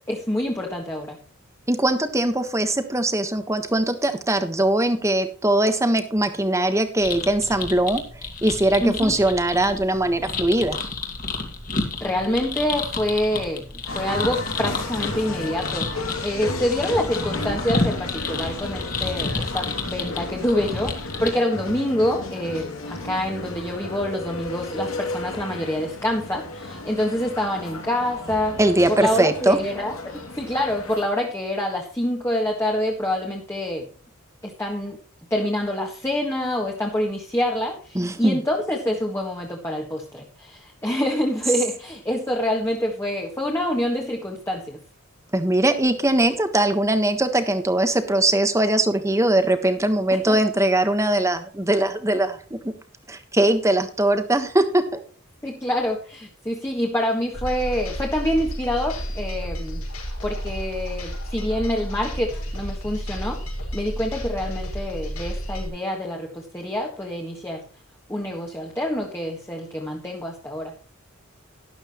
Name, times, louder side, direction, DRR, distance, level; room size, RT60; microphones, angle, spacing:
voice 1, 0.1-1.2 8.8-9.1 12.0-28.6 28.9-30.0 30.3-33.9 34.4-35.0 35.3-44.8 50.3-50.4 55.4-59.8 60.2-63.4 63.7-67.6 68.1-70.7, left 1 dB, 10° left, 0 dB, 1.7 m, -26 dB
voice 2, 1.7-8.0 8.4-10.8 28.6-29.6 37.9-38.4 45.3-52.7 53.1-55.0, right 1 dB, 15° right, 9 dB, 1.3 m, -21 dB
sound 1, 7.0-21.3, left 3 dB, 40° left, 2.5 m, -31 dB
sound 2, 13.9-31.1, left 2 dB, 70° left, 2.7 m, -33 dB
sound 3, 57.3-65.7, equal, 85° left, 5.5 m, -31 dB
13.0 x 11.5 x 3.1 m, 0.40 s
head